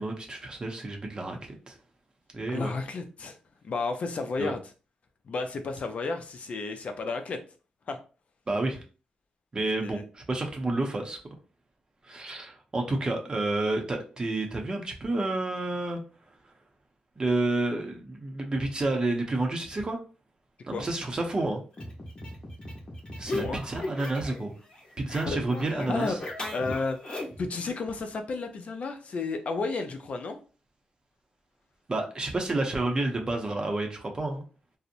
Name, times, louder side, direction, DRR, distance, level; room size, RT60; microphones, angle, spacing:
voice 1, 0.0-1.8 2.3-2.7 4.4-4.5 8.5-8.8 9.5-11.2 12.0-16.0 17.2-20.0 20.6-21.6 23.2-24.5 25.0-26.2 31.9-34.4, right 2 dB, 30° right, 3 dB, 0.6 m, -30 dB
voice 2, 2.5-3.4 3.6-4.6 5.3-7.4 7.9-8.0 9.8-10.0 20.7-20.9 23.2-23.6 25.3-25.4 25.7-26.2 26.5-30.4, left 3 dB, 55° left, 6 dB, 0.4 m, -32 dB
sound 1, 21.7-24.4 24.7-27.5, left 2 dB, 35° left, 0.9 m, -37 dB
2.7 x 2.0 x 2.5 m, 0.35 s
cardioid pair, 100°, 3 cm